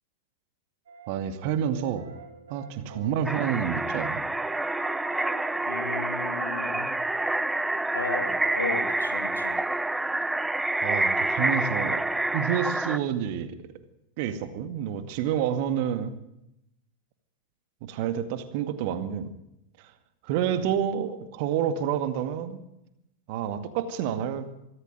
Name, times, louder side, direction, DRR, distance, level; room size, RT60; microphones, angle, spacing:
sound 1, 0.9-1.3 1.7-6.6, right 5 dB, 60° right, 4.2 m, -46 dB
voice 1, 1.1-2.1 2.5-4.2 10.8-12.0 12.3-13.6 14.2-16.1 17.8-19.3 19.8-19.9 20.2-22.6 23.3-24.5, right 9 dB, 45° right, 10 dB, 2.1 m, -29 dB
sound 2, 3.2-13.0, right 2 dB, 5° right, 0.8 m, -27 dB
voice 2, 5.7-6.9 7.9-9.6 20.5-20.7, left 4 dB, 75° left, 7 dB, 2.7 m, -35 dB
23.5 x 15.0 x 9.2 m, 0.85 s
figure-of-eight pair, 90°, 0 cm